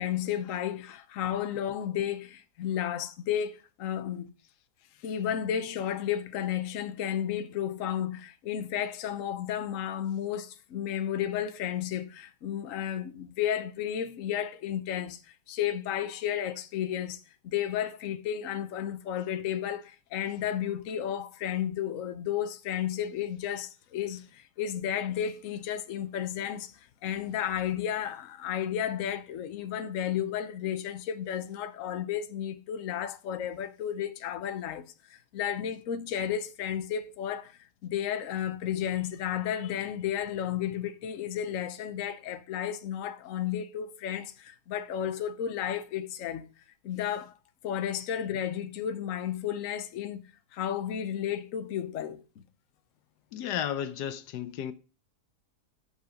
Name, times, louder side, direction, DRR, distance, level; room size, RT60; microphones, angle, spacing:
voice 1, 0.0-4.3 5.0-46.5 46.8-47.3 47.6-50.2 50.5-52.4, left 10 dB, 60° left, 1.1 m, -33 dB
voice 2, 53.3-54.7, left 9 dB, 85° left, 1.3 m, -33 dB
8.4 x 6.3 x 5.1 m
omnidirectional pair, 1.7 m